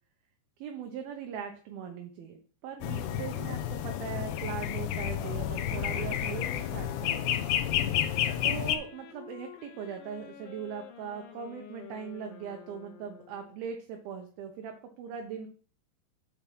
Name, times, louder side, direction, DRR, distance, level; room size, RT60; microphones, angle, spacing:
voice 1, 0.6-2.4 2.6-7.2 8.4-15.5, right 7 dB, 75° right, 3 dB, 2.6 m, -40 dB
sound 1, 2.8-8.8, left 10 dB, 85° left, 2.8 m, -30 dB
sound 2, 6.0-13.7, left 9 dB, 70° left, 2.6 m, -49 dB
7.3 x 5.3 x 5.8 m, 0.42 s
omnidirectional pair, 4.7 m